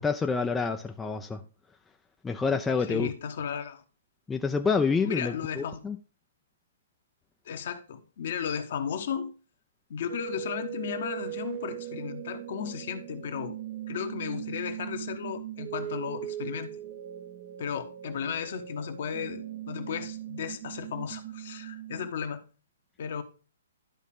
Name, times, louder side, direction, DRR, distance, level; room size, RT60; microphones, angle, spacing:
voice 1, 0.0-1.4 2.2-3.1 4.3-6.0, left 5 dB, 10° left, 0.5 m, -28 dB
voice 2, 2.8-3.8 5.0-5.8 7.4-9.3 9.9-13.5 13.9-16.7 17.6-22.4 23.0-23.2, left 7 dB, 55° left, 1.1 m, -34 dB
sound 1, 10.1-22.1, right 13 dB, 40° right, 0.7 m, -40 dB
12.0 x 4.1 x 3.6 m
figure-of-eight pair, 125°, 0 cm